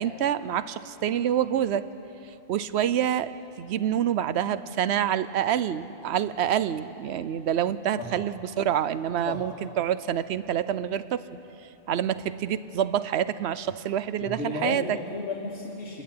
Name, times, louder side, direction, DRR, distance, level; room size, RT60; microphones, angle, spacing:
voice 1, 0.0-1.9 2.5-3.3 3.6-11.2 11.9-15.0, right 10 dB, 80° right, 15 dB, 0.9 m, -27 dB
voice 2, 14.2-16.0, left 2 dB, 85° left, -4 dB, 2.2 m, -33 dB
28.0 x 13.0 x 9.5 m, 3.0 s
omnidirectional pair, 1.1 m